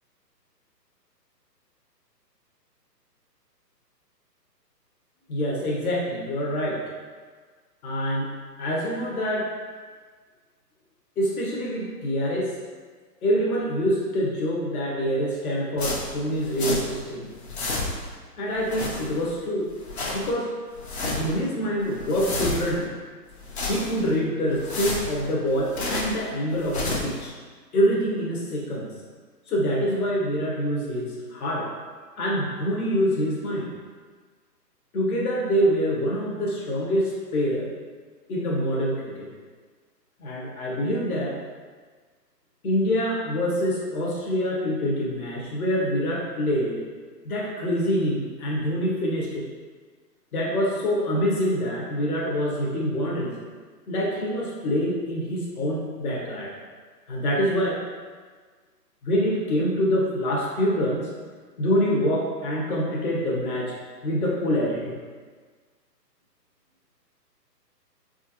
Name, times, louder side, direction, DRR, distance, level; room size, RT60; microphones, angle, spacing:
voice 1, 5.3-6.8 7.8-8.3 8.6-9.5 11.2-12.5 13.2-17.3 18.4-19.7 20.1-20.5 21.1-22.9 23.7-27.3 27.7-28.9 29.5-31.7 32.2-33.7 34.9-37.7 38.3-39.3 40.2-41.4 42.6-46.8 47.2-49.4 50.3-53.3 53.9-56.5 57.1-57.8 59.0-61.1 61.6-63.7 64.0-65.0, equal, 60° left, -4 dB, 1.2 m, -25 dB
sound 1, 15.8-17.1 17.3-18.2 18.5-19.4 19.7-20.3 20.7-21.4 21.8-22.9 23.3-24.1 24.5-26.2 26.6-27.2, left 2 dB, 40° left, 0.7 m, -31 dB
4.5 x 2.5 x 2.9 m, 1.5 s
hypercardioid pair, 145°, 50 cm